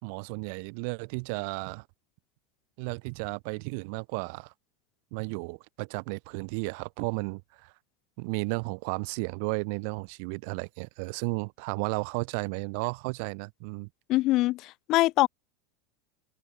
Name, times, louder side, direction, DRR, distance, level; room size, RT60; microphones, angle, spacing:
voice 1, 0.0-1.9 2.8-4.5 5.1-7.7 8.2-13.9, right 34 dB, 60° right, 3.4 m, -33 dB
voice 2, 14.1-15.3, left 18 dB, 50° left, 0.6 m, -23 dB
open air
supercardioid pair, 125°, 0 cm